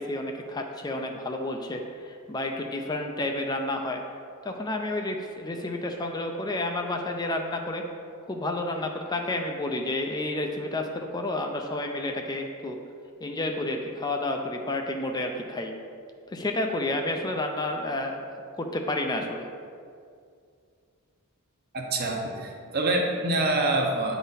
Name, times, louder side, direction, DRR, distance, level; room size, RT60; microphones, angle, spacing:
voice 1, 0.0-4.0 4.4-7.8 8.3-12.8 13.2-15.7 16.3-18.2 18.5-19.4, left 2 dB, 20° left, 3 dB, 0.4 m, -30 dB
voice 2, 21.7-24.2, right 2 dB, 45° right, 1 dB, 0.9 m, -26 dB
9.4 x 4.0 x 4.0 m, 2.3 s
head